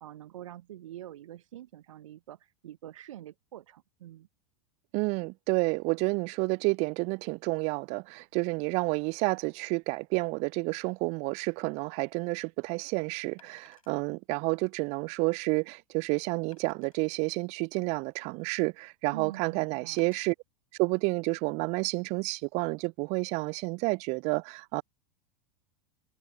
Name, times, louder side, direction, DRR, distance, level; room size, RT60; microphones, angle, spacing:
voice 1, 0.0-4.3 19.1-20.1, right 12 dB, 65° right, 1.1 m, -45 dB
voice 2, 4.9-20.3 20.8-24.8, right 30 dB, 40° right, 0.5 m, -30 dB
Wood, 11.8-11.9 13.4-14.0 14.6-14.7 15.2-15.3 16.5-17.0 17.8-18.6 20.0-20.3 21.1-21.3, left 7 dB, 75° left, 7.3 m, -62 dB
figure-of-eight pair, 85°, 18 cm